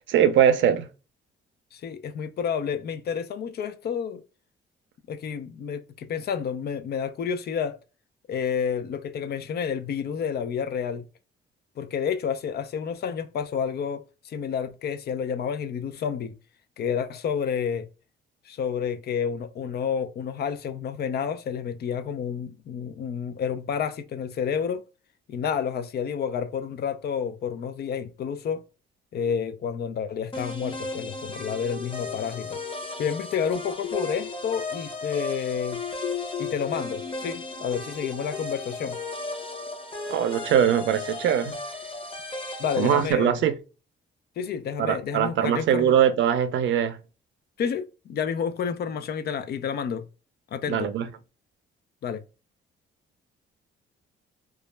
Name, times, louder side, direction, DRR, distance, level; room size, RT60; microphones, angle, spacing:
voice 1, 0.1-0.9 40.1-41.5 42.8-43.5 44.8-47.0 50.7-51.1, right 9 dB, 70° right, 0.5 m, -22 dB
voice 2, 1.7-4.2 5.1-7.8 8.3-11.0 11.8-16.4 16.8-17.9 18.5-24.8 25.3-28.6 29.1-32.6 33.0-35.8 36.4-39.0 42.6-43.4 44.4-45.9 47.6-50.0 50.5-50.9 52.0-52.2, left 7 dB, 55° left, 0.4 m, -30 dB
sound 1, 30.3-43.1, left 3 dB, 25° left, 0.8 m, -35 dB
2.3 x 2.0 x 3.1 m
cardioid pair, 90°, 20 cm